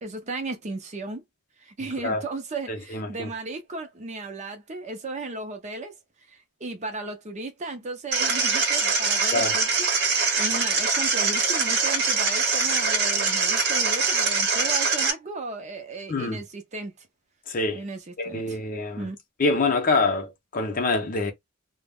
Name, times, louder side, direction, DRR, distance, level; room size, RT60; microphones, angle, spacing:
voice 1, 0.0-1.2 1.6-5.9 6.3-9.7 10.1-17.1 17.7-18.6 19.0-19.2, right 3 dB, 30° right, 0.5 m, -35 dB
voice 2, 2.7-3.3 9.3-9.5 16.1-16.4 17.5-17.8 18.2-19.1 19.4-21.3, left 3 dB, 40° left, 0.6 m, -25 dB
sound 1, 8.1-15.1, right 4 dB, 50° right, 0.9 m, -23 dB
2.2 x 2.0 x 3.4 m
head